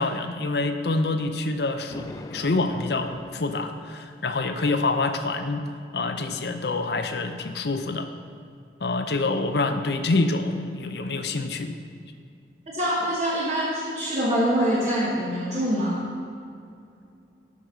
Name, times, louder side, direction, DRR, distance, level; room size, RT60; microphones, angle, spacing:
voice 1, 0.0-5.6 5.9-8.1 8.8-11.7, left 3 dB, 65° left, 7 dB, 0.7 m, -26 dB
Thunder, 1.9-4.4, left 1 dB, 20° left, 0.4 m, -41 dB
voice 2, 12.7-16.0, equal, 40° right, -7 dB, 1.4 m, -24 dB
11.0 x 5.3 x 5.7 m, 2.5 s
head